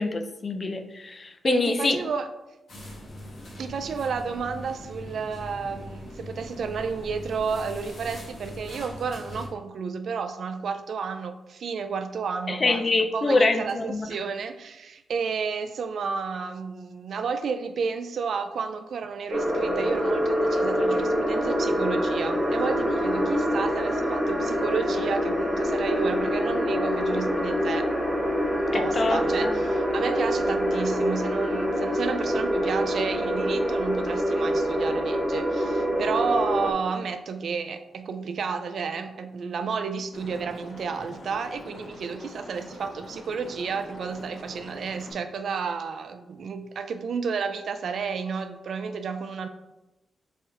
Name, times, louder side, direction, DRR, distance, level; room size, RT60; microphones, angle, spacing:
voice 1, 0.0-2.0 12.5-14.1 28.7-29.6, left 3 dB, 30° left, 7 dB, 0.4 m, -25 dB
voice 2, 1.5-2.3 3.6-27.9 28.7-49.5, right 5 dB, 65° right, 9 dB, 0.3 m, -31 dB
sound 1, 2.7-9.5, left 1 dB, 55° left, 1.6 m, -41 dB
sound 2, 19.3-36.7, equal, 5° left, 1.0 m, -25 dB
Liquid, 40.1-45.1, left 1 dB, 75° left, 1.6 m, -44 dB
5.5 x 3.3 x 2.9 m, 0.99 s
wide cardioid pair, 145°, 0 cm